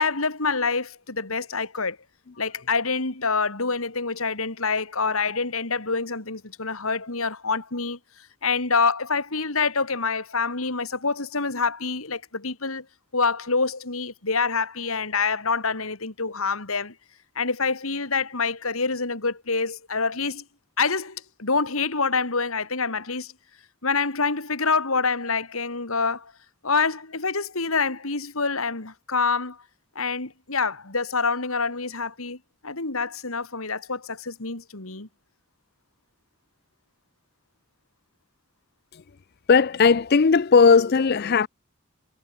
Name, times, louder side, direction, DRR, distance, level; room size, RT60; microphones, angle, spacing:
voice 1, 0.0-2.0 2.4-8.0 8.4-12.8 13.1-16.9 17.3-20.4 20.8-23.3 23.8-26.3 26.6-29.6 29.9-32.4 32.6-35.1, left 4 dB, 80° left, 2.8 m, -26 dB
voice 2, 39.5-41.5, left 5 dB, 45° left, 0.5 m, -17 dB
head